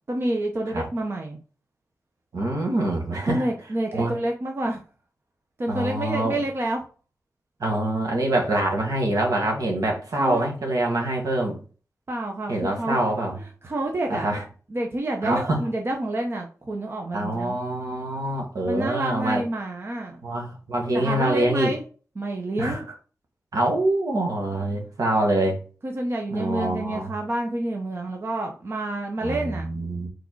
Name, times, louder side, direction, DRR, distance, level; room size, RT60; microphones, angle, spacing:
voice 1, 0.1-1.4 3.3-4.8 5.6-6.8 10.2-10.5 12.1-13.0 13.4-14.3 14.7-17.6 18.7-20.2 20.9-21.8 22.2-22.9 25.8-29.7, right 1 dB, 40° right, 2 dB, 1.0 m, -28 dB
voice 2, 2.3-3.4 3.9-4.1 5.7-6.3 7.6-11.6 12.5-13.4 14.1-14.4 15.2-15.7 17.1-19.4 20.2-21.7 22.6-22.8 23.5-25.6 26.3-27.1 29.2-30.1, right 1 dB, 75° right, 1 dB, 2.1 m, -25 dB
4.9 x 4.6 x 4.6 m, 0.38 s
wide cardioid pair, 130°, 6 cm